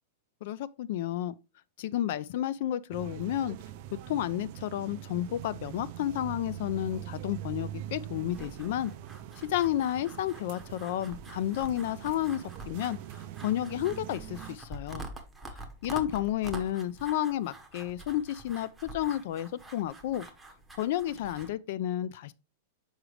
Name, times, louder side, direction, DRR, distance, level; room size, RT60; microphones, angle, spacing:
voice 1, 0.4-1.3 1.8-3.6 3.9-8.9 9.4-13.0 13.4-15.0 15.8-20.3 20.8-22.3, left 12 dB, 55° left, 0.3 m, -31 dB
sound 1, 2.9-14.6, right 13 dB, 45° right, 0.4 m, -43 dB
sound 2, 8.3-21.5, right 2 dB, 5° right, 0.8 m, -47 dB
6.3 x 4.9 x 3.2 m
supercardioid pair, 165°, 0 cm